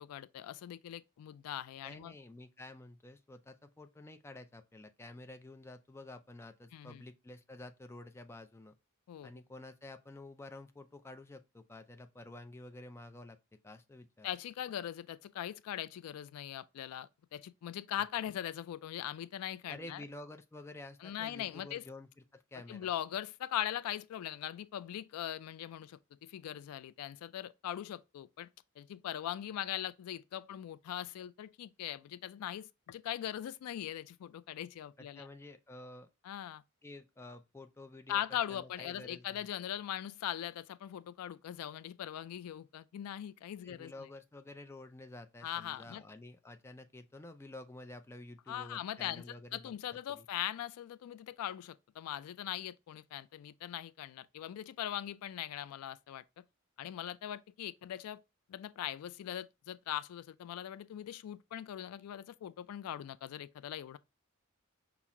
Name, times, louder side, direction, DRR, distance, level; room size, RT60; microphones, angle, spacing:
voice 1, 0.0-2.1 6.7-7.0 9.1-9.3 14.2-20.0 21.0-21.8 22.7-28.5 28.8-35.3 36.2-36.6 38.1-44.1 45.4-46.0 48.5-49.2 49.5-56.2 56.8-58.2 58.5-64.0, left 11 dB, 90° left, 0.3 m, -41 dB
voice 2, 1.8-8.7 9.2-13.4 13.6-14.3 19.7-22.9 35.0-36.1 36.8-38.2 38.5-39.5 43.6-49.7 50.1-50.3, left 2 dB, 10° left, 0.4 m, -50 dB
5.7 x 2.0 x 3.6 m
head